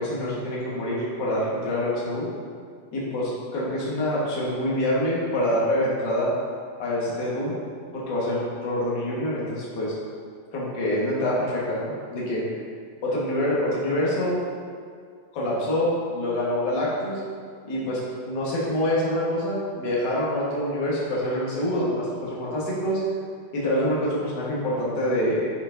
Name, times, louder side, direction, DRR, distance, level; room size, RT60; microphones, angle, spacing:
voice 1, 0.0-2.3 2.9-6.3 6.8-7.6 8.1-10.0 10.5-12.4 13.0-14.4 15.3-17.2 17.6-23.0 23.5-25.5, left 1 dB, 55° left, -6 dB, 1.2 m, -26 dB
8.9 x 4.6 x 3.9 m, 2.1 s
omnidirectional pair, 4.4 m